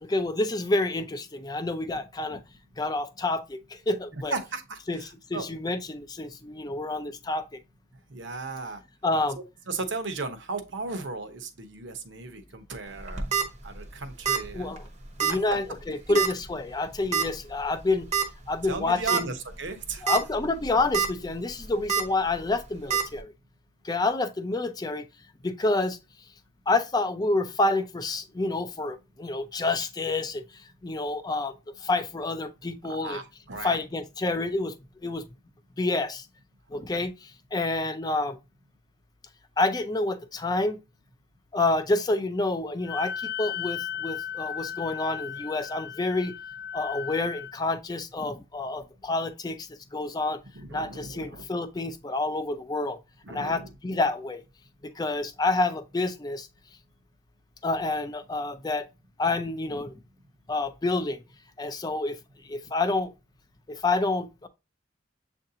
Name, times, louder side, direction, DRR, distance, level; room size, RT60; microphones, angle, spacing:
voice 1, 0.0-2.4 2.8-4.3 4.9-5.0 5.3-7.6 9.0-9.4 14.5-14.8 15.2-18.1 18.5-19.3 20.0-23.3 23.8-25.1 25.4-26.0 26.7-30.4 30.8-33.2 33.6-34.7 35.0-35.2 35.8-36.3 36.7-38.4 39.6-40.8 41.5-46.3 46.7-50.4 50.7-53.0 53.3-54.4 54.8-56.5 57.6-58.9 59.2-59.9 60.5-61.2 61.6-62.2 62.4-63.1 63.7-64.5, left 2 dB, 20° left, 0.4 m, -28 dB
voice 2, 4.1-5.0 5.3-5.5 8.1-8.8 9.7-13.3 13.6-14.7 15.3-15.4 16.1-16.2 18.7-20.1 32.8-33.8 50.5-51.5 53.2-53.7, right 3 dB, 70° right, 0.8 m, -35 dB
sound 1, 13.0-13.4 14.2-14.5 14.8-14.9 15.2-15.3 16.1-16.4 17.1-17.2 18.1-18.3 18.7-18.8 19.1-19.2 19.9-20.2 20.6-21.1 21.9-22.0 22.9-23.0, right 6 dB, 35° right, 0.7 m, -25 dB
Wind instrument woodwind instrument, 42.8-47.5, left 9 dB, 55° left, 0.8 m, -35 dB
7.5 x 2.6 x 2.7 m
head